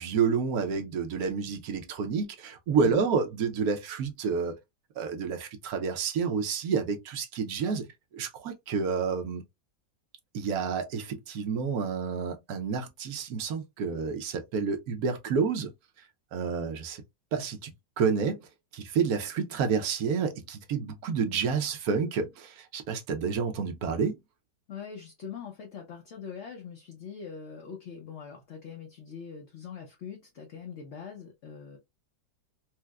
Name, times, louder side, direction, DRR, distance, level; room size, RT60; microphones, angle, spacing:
voice 1, 0.0-4.5 5.0-7.8 8.1-9.4 10.3-15.7 16.3-17.0 17.3-17.7 18.0-18.4 18.7-24.2, right 5 dB, 70° right, 1.1 m, -29 dB
voice 2, 2.8-3.1 24.7-31.8, left 7 dB, 55° left, 0.8 m, -42 dB
4.5 x 2.1 x 2.3 m
omnidirectional pair, 1.8 m